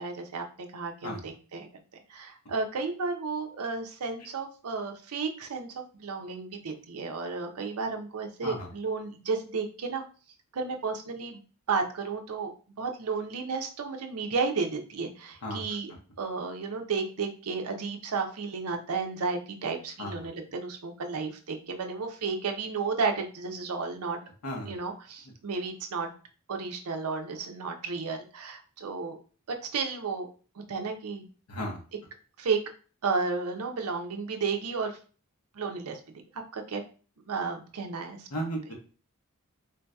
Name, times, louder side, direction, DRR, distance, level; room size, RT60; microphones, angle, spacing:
voice 1, 0.0-1.7 2.1-10.0 10.5-11.4 11.7-12.5 12.8-15.9 16.2-24.2 24.7-26.1 26.5-29.2 29.5-30.3 30.7-31.2 32.4-32.6 33.0-35.0 35.5-36.2 36.5-36.8 37.3-38.4, right 4 dB, 75° right, 4 dB, 0.5 m, -32 dB
voice 2, 24.4-24.8 31.5-31.8 38.3-38.7, equal, 90° left, -1 dB, 0.9 m, -34 dB
3.7 x 2.7 x 2.3 m, 0.38 s
head